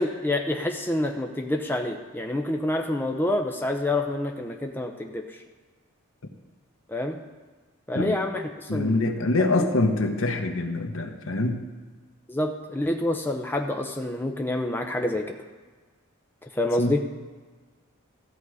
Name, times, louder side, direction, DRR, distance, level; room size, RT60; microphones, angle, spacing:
voice 1, 0.0-5.3 6.9-7.2 7.9-9.0 9.6-9.7 12.3-15.3 16.4-17.0, left 1 dB, 10° left, 3 dB, 0.6 m, -27 dB
voice 2, 8.7-11.7 16.8-17.0, left 2 dB, 75° left, 5 dB, 1.1 m, -25 dB
14.0 x 7.8 x 4.8 m, 1.4 s
head